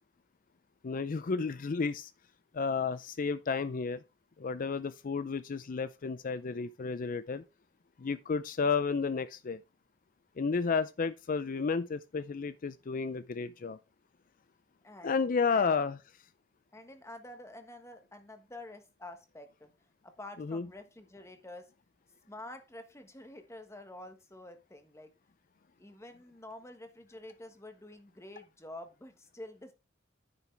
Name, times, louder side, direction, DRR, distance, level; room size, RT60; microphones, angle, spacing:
voice 1, 0.8-2.1 2.5-4.0 4.4-7.4 8.0-9.6 10.4-13.8 15.0-16.0 20.4-20.7, left 5 dB, 45° left, 0.4 m, -32 dB
voice 2, 15.5-15.8 16.7-19.7 20.0-21.7 22.3-25.1 25.8-29.7, left 1 dB, 15° left, 1.4 m, -48 dB
9.9 x 7.2 x 3.4 m
head